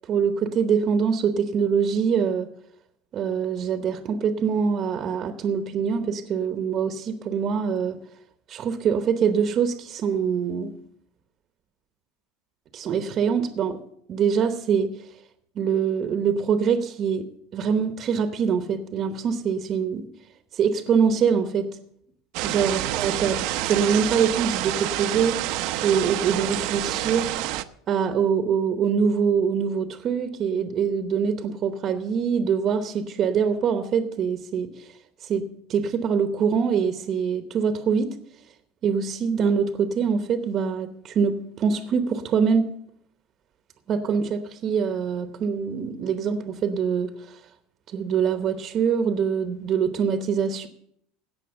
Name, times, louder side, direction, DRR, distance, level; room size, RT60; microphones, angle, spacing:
voice 1, 0.0-2.5 3.1-8.0 8.5-10.7 12.7-13.8 14.1-14.9 15.6-17.3 17.5-20.0 20.5-21.7 22.4-27.3 27.9-34.9 35.2-38.2 38.8-42.7 43.9-47.4 47.9-50.7, right 6 dB, 35° right, 8 dB, 0.9 m, -24 dB
sound 1, 22.3-27.6, right 15 dB, 60° right, 0.6 m, -28 dB
16.5 x 6.0 x 6.9 m, 0.71 s
supercardioid pair, 145°, 0 cm